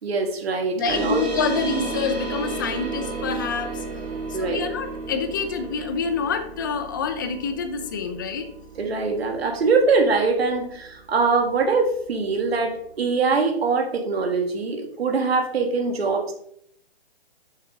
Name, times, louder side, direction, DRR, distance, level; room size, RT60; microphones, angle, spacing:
voice 1, 0.0-1.2 4.3-4.6 8.8-16.3, right 4 dB, 75° right, 3 dB, 1.6 m, -23 dB
voice 2, 0.7-3.8 4.3-8.5, left 5 dB, 20° left, 8 dB, 0.5 m, -27 dB
sound 1, 0.8-11.8, right 4 dB, 25° right, 2.6 m, -33 dB
7.3 x 5.8 x 3.6 m, 0.69 s
hypercardioid pair, 150°, 31 cm